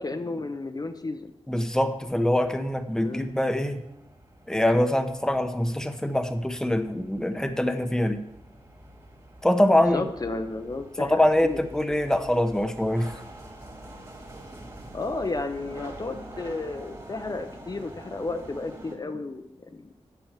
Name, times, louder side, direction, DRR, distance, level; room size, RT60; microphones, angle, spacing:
voice 1, 0.0-1.3 3.0-3.3 9.7-11.6 14.9-19.9, left 3 dB, 35° left, 6 dB, 0.6 m, -33 dB
voice 2, 1.5-3.8 4.5-8.2 9.4-10.1 11.0-13.1, left 1 dB, 5° left, 8 dB, 0.8 m, -24 dB
sound 1, 1.5-19.0, right 1 dB, 30° right, 2.1 m, -46 dB
8.9 x 7.0 x 7.3 m, 0.85 s
wide cardioid pair, 95°, 11 cm